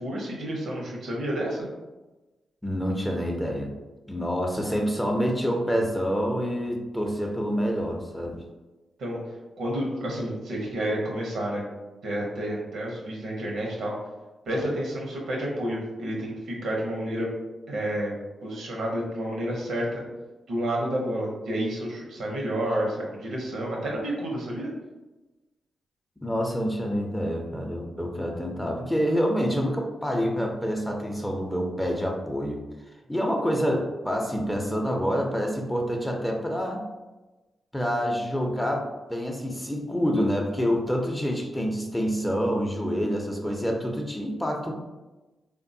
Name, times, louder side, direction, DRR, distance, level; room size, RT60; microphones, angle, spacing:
voice 1, 0.0-1.7 9.0-9.2 9.6-11.6 12.0-13.9 14.5-17.3 17.7-18.2 18.4-20.0 20.5-24.7, right 1 dB, 80° right, -2 dB, 0.7 m, -30 dB
voice 2, 2.6-3.7 4.1-8.4 26.2-32.6 33.1-36.8 37.7-44.7, equal, 10° left, 1 dB, 0.6 m, -27 dB
3.5 x 2.2 x 2.6 m, 1.1 s
supercardioid pair, 50°, 0 cm